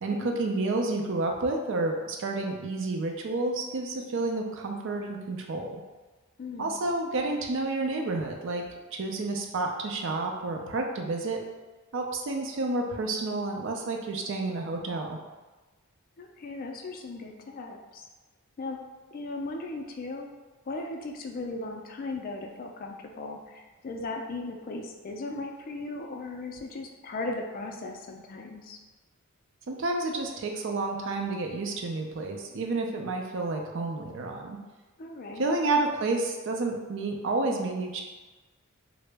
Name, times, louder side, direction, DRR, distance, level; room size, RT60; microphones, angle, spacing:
voice 1, 0.0-5.7 6.6-8.6 8.9-11.4 11.9-15.2 29.7-34.6 35.4-38.0, right 2 dB, 60° right, 2 dB, 0.4 m, -30 dB
voice 2, 6.4-6.8 16.2-18.0 18.6-18.8 19.1-20.3 20.7-28.8 35.0-35.5, left 2 dB, 40° left, 2 dB, 0.3 m, -37 dB
3.6 x 2.0 x 3.3 m, 1.2 s
head